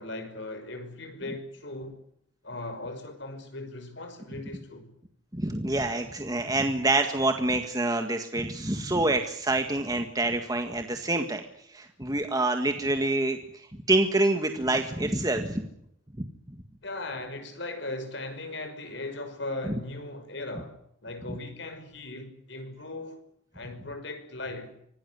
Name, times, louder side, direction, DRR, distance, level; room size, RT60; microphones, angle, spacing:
voice 1, 0.0-2.0 2.4-5.0 16.8-20.8 21.0-23.2 23.5-24.8, left 2 dB, 65° left, 5.8 m, -38 dB
voice 2, 5.3-11.4 11.7-15.6 16.2-16.3, right 2 dB, 20° right, 1.8 m, -27 dB
25.5 x 18.0 x 9.5 m
head